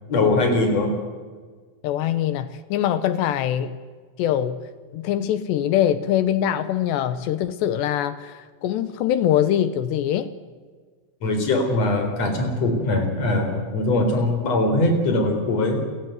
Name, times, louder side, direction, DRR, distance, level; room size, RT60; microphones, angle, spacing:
voice 1, 0.1-0.9 11.2-15.8, left 2 dB, 35° left, 6 dB, 4.9 m, -21 dB
voice 2, 1.8-3.8 4.2-10.3, left 10 dB, 75° left, 14 dB, 3.0 m, -23 dB
29.0 x 16.0 x 9.4 m, 1.5 s
omnidirectional pair, 5.3 m